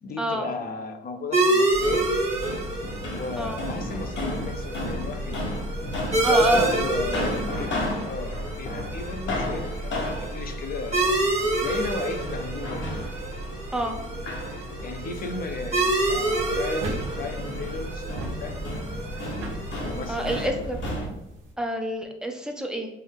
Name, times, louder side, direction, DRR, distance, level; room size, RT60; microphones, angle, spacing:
voice 1, 0.0-2.1 3.0-5.6 6.1-7.7 8.0-11.1 11.6-13.1 14.8-18.6 19.8-20.5, left 3 dB, 50° left, 7 dB, 0.6 m, -35 dB
sound 1, 1.3-20.5, right 2 dB, 35° right, 1.3 m, -28 dB
sound 2, 1.7-21.1, left 1 dB, 70° left, 1.0 m, -33 dB
voice 2, 6.2-6.7 7.1-7.3 13.7-14.0 20.1-20.8 21.6-22.9, equal, 5° right, 3 dB, 0.6 m, -27 dB
sound 3, 16.2-21.5, right 1 dB, 85° right, 0.8 m, -39 dB
5.5 x 2.0 x 3.5 m, 0.95 s
cardioid pair, 90°, 20 cm